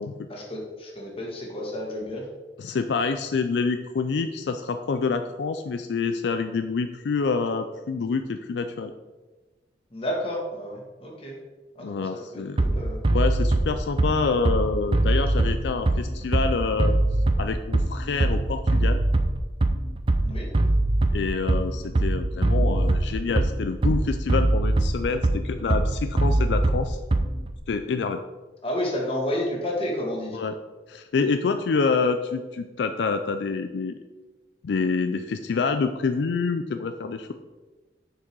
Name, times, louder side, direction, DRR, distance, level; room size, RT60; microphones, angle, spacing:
voice 1, 0.3-2.2 9.9-11.3 11.8-13.0 20.2-20.5 28.6-30.4, left 1 dB, 30° left, -1 dB, 1.8 m, -31 dB
voice 2, 2.6-8.9 11.8-12.6 13.1-16.9 17.4-19.0 21.1-27.0 27.7-28.2 30.3-30.5 30.9-34.0 34.6-37.3, left 4 dB, 75° left, 8 dB, 0.4 m, -27 dB
Bass drum, 12.6-27.6, right 2 dB, 30° right, 0.5 m, -22 dB
6.5 x 6.0 x 4.6 m, 1.2 s
head